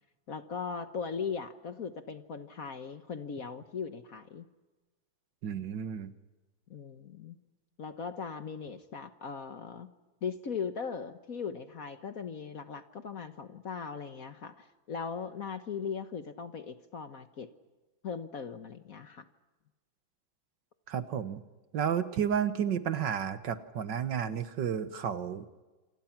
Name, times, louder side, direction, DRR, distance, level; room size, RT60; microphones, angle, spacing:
voice 1, 0.3-4.5 6.7-7.4 7.8-9.9 10.2-17.5 18.0-19.2, left 6 dB, 50° left, 9 dB, 1.4 m, -39 dB
voice 2, 5.4-6.1 20.9-21.4 21.7-25.5, right 8 dB, 65° right, 11 dB, 1.8 m, -32 dB
28.0 x 26.0 x 6.0 m, 1.2 s
omnidirectional pair, 2.2 m